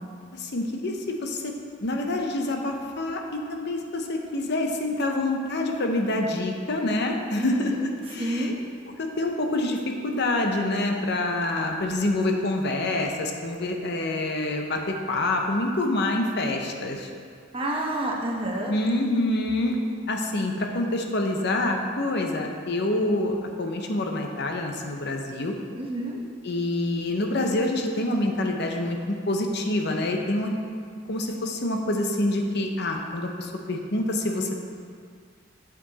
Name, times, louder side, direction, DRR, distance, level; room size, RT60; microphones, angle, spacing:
voice 1, 0.3-1.5 1.8-8.5 9.0-17.1 18.7-19.8 20.1-25.5 26.4-30.5 31.1-34.6, left 1 dB, 55° left, 2 dB, 0.8 m, -26 dB
voice 2, 7.4-7.7 8.2-8.5 17.5-18.7 25.8-26.2, right 1 dB, 25° right, -2 dB, 1.1 m, -29 dB
9.0 x 7.0 x 4.1 m, 2.1 s
head